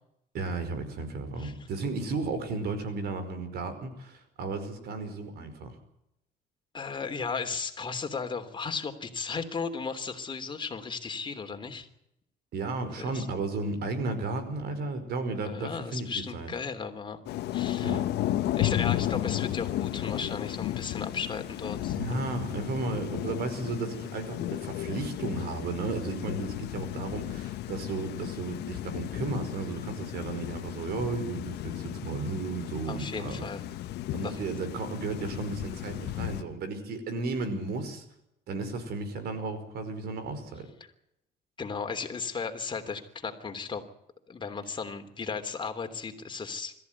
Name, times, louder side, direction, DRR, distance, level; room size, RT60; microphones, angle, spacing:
voice 1, 0.3-5.8 12.5-16.5 17.8-18.0 21.9-33.5 34.1-38.0 38.5-40.7, right 3 dB, 70° right, 10 dB, 5.3 m, -34 dB
voice 2, 6.7-11.9 13.0-13.3 15.4-17.2 17.5-18.0 18.6-22.2 32.9-33.6 34.2-34.4 41.6-43.8 44.3-46.8, left 5 dB, 30° left, 6 dB, 3.1 m, -35 dB
Thunder / Rain, 17.3-36.4, left 13 dB, 75° left, 1.4 m, -34 dB
22.5 x 14.5 x 9.6 m, 0.81 s
cardioid pair, 110°, 17 cm